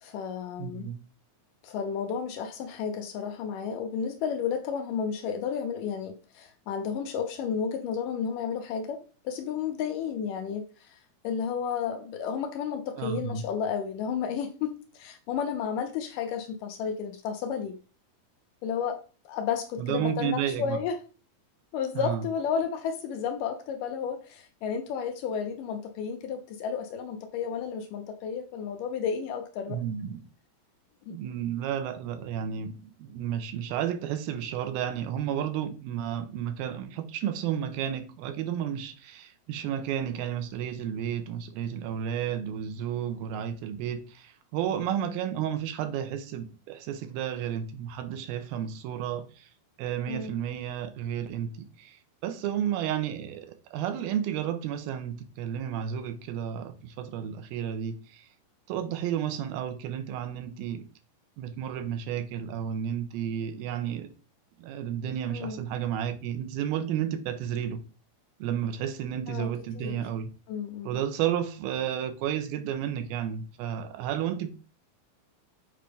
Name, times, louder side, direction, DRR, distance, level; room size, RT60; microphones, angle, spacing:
voice 1, 0.0-0.9 1.6-11.0 11.2-17.8 18.6-21.0 21.7-29.8 31.1-31.2 50.1-50.4 65.3-65.6 69.3-70.0 70.5-71.0, left 7 dB, 75° left, 2.1 m, -32 dB
voice 2, 0.6-1.0 13.0-13.4 19.8-20.8 22.0-22.2 29.7-30.2 31.1-49.5 49.8-51.5 51.8-58.3 58.7-60.8 61.4-64.1 64.6-67.8 68.4-70.3 70.8-74.5, right 9 dB, 90° right, 2.6 m, -32 dB
7.7 x 4.5 x 3.4 m
omnidirectional pair, 4.3 m